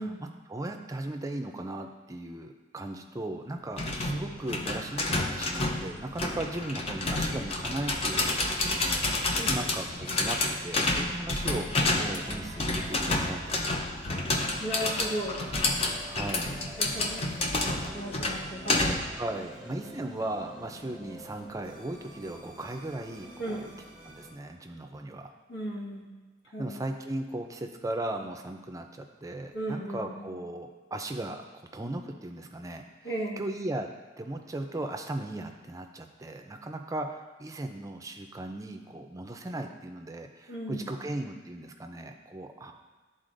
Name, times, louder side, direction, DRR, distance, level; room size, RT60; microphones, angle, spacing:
voice 1, 0.0-13.7 16.0-16.7 17.1-17.2 19.2-23.7 24.0-25.3 26.6-31.4 31.7-32.8 33.4-33.9 34.2-42.7, right 1 dB, 20° right, 4 dB, 0.5 m, -37 dB
sound 1, 3.8-19.2, left 2 dB, 35° left, 0.6 m, -29 dB
sound 2, 12.1-24.3, equal, 5° right, 0.9 m, -48 dB
voice 2, 14.6-15.5 16.8-19.0 23.4-23.7 25.5-26.1 26.5-26.8 29.5-30.4 33.0-33.5 40.5-41.0, right 1 dB, 85° left, -6 dB, 1.9 m, -36 dB
11.5 x 4.0 x 2.6 m, 1.3 s
head